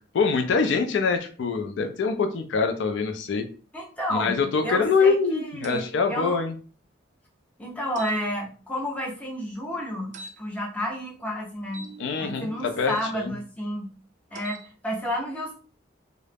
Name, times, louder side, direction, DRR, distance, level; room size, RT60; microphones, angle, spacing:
voice 1, 0.1-3.4 4.1-6.5 12.0-13.3, left 4 dB, 75° left, 6 dB, 0.4 m, -24 dB
voice 2, 3.7-6.4 7.6-11.9 12.2-13.9 14.3-15.5, equal, 5° left, -2 dB, 0.6 m, -31 dB
sound 1, 5.6-5.9 8.0-8.2 10.1-10.4 11.7-13.1 14.3-14.7, right 2 dB, 40° right, 0.3 m, -42 dB
2.3 x 2.0 x 3.2 m, 0.40 s
head